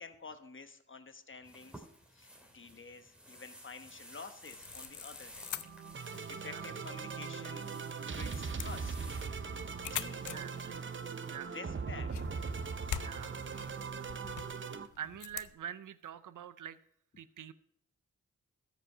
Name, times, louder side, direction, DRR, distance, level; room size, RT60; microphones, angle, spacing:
voice 1, 0.0-1.9 2.1-5.5 6.3-7.7 8.0-9.0 9.9-10.4 11.5-12.1, left 4 dB, 40° left, 8 dB, 1.1 m, -49 dB
sound 1, 1.4-9.3, equal, 5° right, 2.9 m, -54 dB
sound 2, 4.4-15.5, left 10 dB, 75° left, 0.5 m, -46 dB
sound 3, 5.5-14.9, right 5 dB, 40° right, 0.6 m, -40 dB
voice 2, 10.1-10.8 11.2-11.6 13.0-13.4 15.0-16.8 17.2-17.5, right 9 dB, 85° right, 15 dB, 0.5 m, -45 dB
13.5 x 5.2 x 5.4 m, 0.68 s
cardioid pair, 50°, 30 cm